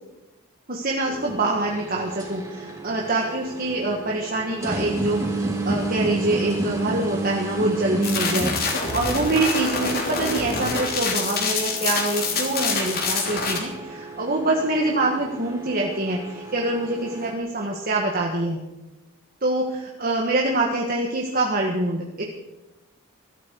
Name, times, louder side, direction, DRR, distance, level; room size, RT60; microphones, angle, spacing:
voice 1, 0.7-18.6 19.4-22.2, right 2 dB, 45° right, -1 dB, 1.7 m, -25 dB
sound 1, 1.0-17.3, right 2 dB, 15° right, 3.3 m, -32 dB
sound 2, 8.0-13.6, left 4 dB, 45° left, 3.2 m, -26 dB
23.0 x 13.0 x 4.7 m, 0.99 s
head